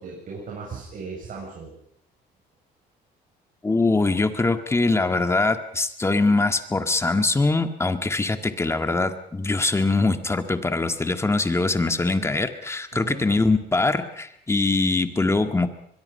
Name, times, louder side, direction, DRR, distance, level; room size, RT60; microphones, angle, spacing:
voice 1, 0.0-1.7 12.9-13.3, right 4 dB, 50° right, -3 dB, 7.6 m, -37 dB
voice 2, 3.6-15.7, left 3 dB, 15° left, 8 dB, 1.8 m, -22 dB
23.5 x 22.0 x 5.6 m, 0.71 s
cardioid pair, 110°, 17 cm